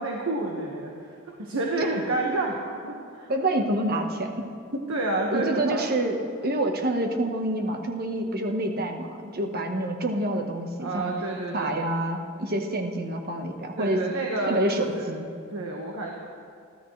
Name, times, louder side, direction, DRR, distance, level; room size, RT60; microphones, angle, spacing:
voice 1, 0.0-3.3 4.9-5.8 10.8-11.8 13.8-14.6 14.9-15.1 15.5-16.1, right 2 dB, 65° right, -2 dB, 1.6 m, -29 dB
voice 2, 3.3-4.8 5.3-6.2 6.4-11.1 11.5-14.0 14.5-15.3, right 1 dB, 45° right, 3 dB, 1.4 m, -27 dB
29.0 x 12.5 x 3.3 m, 2.3 s
head